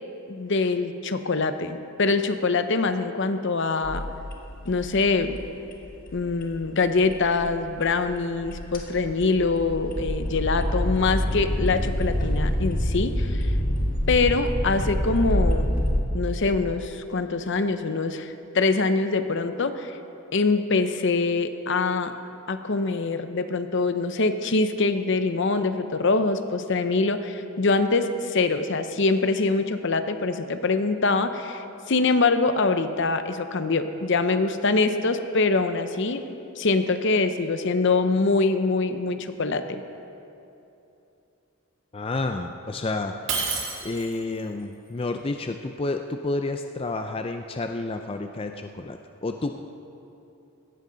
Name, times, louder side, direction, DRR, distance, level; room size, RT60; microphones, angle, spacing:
voice 1, 0.3-4.0 4.7-5.4 6.1-13.5 14.1-15.7 16.1-20.0 20.3-22.1 22.5-36.2 36.6-39.8, left 3 dB, 60° left, 9 dB, 0.7 m, -24 dB
sound 1, 3.8-16.0, equal, 40° left, 1.7 m, -27 dB
voice 2, 41.9-43.3 43.8-49.6, left 2 dB, 25° left, 6 dB, 0.4 m, -30 dB
Shatter, 43.3-44.3, right 5 dB, 65° right, 2.2 m, -29 dB
17.0 x 14.0 x 4.0 m, 2.8 s
head